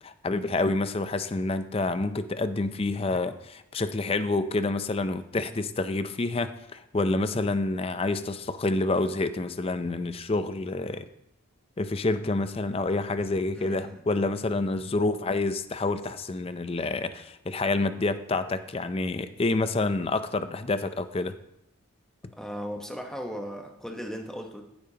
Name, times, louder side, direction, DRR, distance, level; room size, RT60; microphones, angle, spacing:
voice 1, 0.0-11.1 11.8-21.4, left 2 dB, 30° left, 11 dB, 0.5 m, -28 dB
voice 2, 13.5-14.0 22.4-24.6, equal, 5° left, 2 dB, 1.0 m, -37 dB
14.5 x 8.7 x 2.9 m, 0.83 s
head